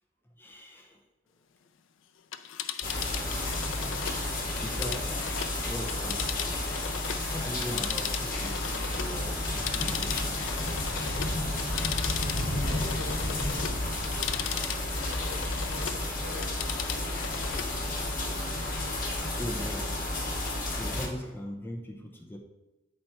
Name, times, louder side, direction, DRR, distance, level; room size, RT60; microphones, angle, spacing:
voice 1, 0.4-1.0 4.6-5.1 5.6-6.7 7.2-10.7 17.3-17.4 19.3-20.1 20.4-22.4, equal, 10° left, 0 dB, 0.7 m, -40 dB
Telephone, 2.2-7.3 7.6-16.0 16.3-17.7 18.1-18.2, left 9 dB, 70° left, 0.4 m, -37 dB
sound 1, 2.8-21.1, left 1 dB, 45° left, 1.5 m, -31 dB
voice 2, 12.6-13.8 14.6-16.5, left 1 dB, 45° right, -3 dB, 1.1 m, -45 dB
8.4 x 4.3 x 4.5 m, 1.0 s
head